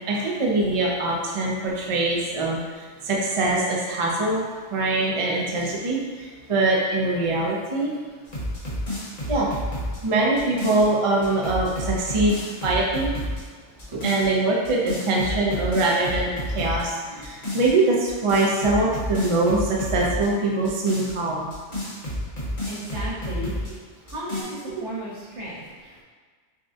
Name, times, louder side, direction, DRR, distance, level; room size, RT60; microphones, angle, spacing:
voice 1, 0.1-4.4 4.7-7.9 9.3-9.5 10.0-12.3 12.6-13.1 13.9-21.5, right 2 dB, 35° right, -3 dB, 0.5 m, -23 dB
sound 1, 8.3-10.9 11.2-13.4 13.8-14.3 14.6-16.9 17.2-17.7 18.1-20.3 20.6-23.7 24.1-24.4, equal, 35° left, 1.0 m, -30 dB
voice 2, 22.7-23.8 24.1-26.0, equal, 75° right, -8 dB, 1.6 m, -35 dB
6.1 x 2.2 x 2.7 m, 1.5 s
omnidirectional pair, 1.2 m